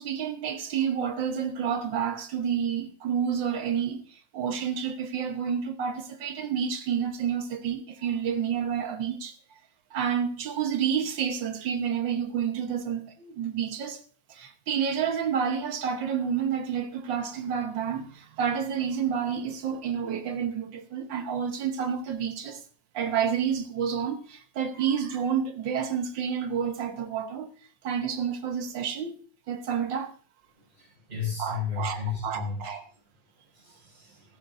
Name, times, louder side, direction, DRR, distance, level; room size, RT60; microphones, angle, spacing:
voice 1, 0.0-9.4 9.9-14.0 14.3-22.6 22.9-27.5 27.8-30.1 31.4-32.8, right 7 dB, 80° right, 1.8 m, -29 dB
voice 2, 30.7-32.7 33.5-34.2, left 6 dB, 30° right, 8.2 m, -34 dB
15.0 x 14.0 x 2.6 m
omnidirectional pair, 2.0 m